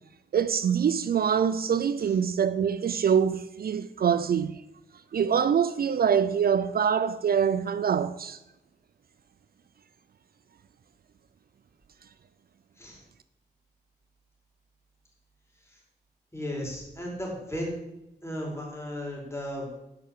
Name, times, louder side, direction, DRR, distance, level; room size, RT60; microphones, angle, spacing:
voice 1, 0.3-4.6 5.1-8.4, right 7 dB, 60° right, 0.4 m, -24 dB
voice 2, 16.3-17.8 18.2-19.8, equal, 15° left, 4.4 m, -35 dB
9.8 x 5.7 x 6.6 m
cardioid pair, 55°, 18 cm